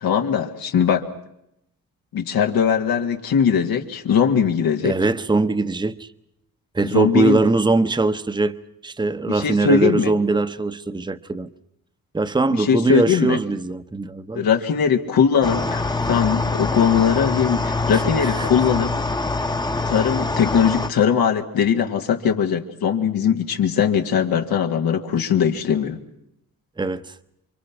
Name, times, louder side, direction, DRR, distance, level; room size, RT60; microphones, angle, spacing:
voice 1, 0.0-1.1 2.1-5.0 6.9-7.4 9.3-10.1 12.6-13.4 14.3-18.9 19.9-26.0, left 7 dB, 90° left, 2.2 m, -20 dB
voice 2, 4.8-6.1 6.7-8.6 8.8-11.5 12.1-14.5 17.9-18.5 26.8-27.0, right 3 dB, 15° right, 0.9 m, -21 dB
sound 1, 15.4-20.9, left 3 dB, 10° left, 1.0 m, -24 dB
28.0 x 24.5 x 6.0 m
cardioid pair, 95°, 35 cm